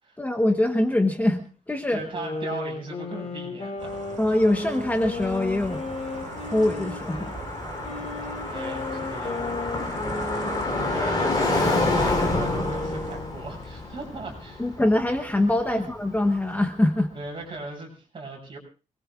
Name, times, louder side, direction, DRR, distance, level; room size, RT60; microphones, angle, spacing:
voice 1, 0.2-2.0 4.2-5.8 6.5-7.4 10.4-10.6 14.6-17.1, left 1 dB, 10° left, 5 dB, 1.2 m, -23 dB
voice 2, 1.9-4.0 8.5-9.7 10.8-14.8 15.7-15.8 17.1-18.6, right 3 dB, 40° right, 0 dB, 6.9 m, -37 dB
sound 1, 2.1-7.3 7.8-13.4, left 3 dB, 50° left, 6.0 m, -35 dB
sound 2, 3.8-13.2, right 4 dB, 60° right, 5.5 m, -42 dB
Car passing by, 4.3-16.3, left 2 dB, 30° left, 3.6 m, -29 dB
27.0 x 20.5 x 2.5 m, 0.34 s
wide cardioid pair, 170°, 14 cm